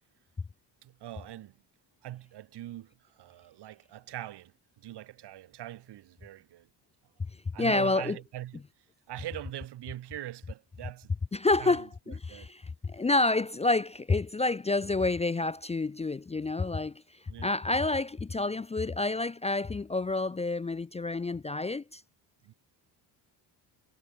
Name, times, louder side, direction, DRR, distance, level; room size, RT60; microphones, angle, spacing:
voice 1, 0.8-1.5 2.0-6.7 7.5-8.6 9.1-11.2 11.6-12.5 17.3-17.5 22.4-22.5, right 13 dB, 65° right, 1.7 m, -42 dB
voice 2, 7.6-8.2 11.3-17.0 17.4-22.0, left 3 dB, 15° left, 0.6 m, -28 dB
cardioid pair, 110°, 43 cm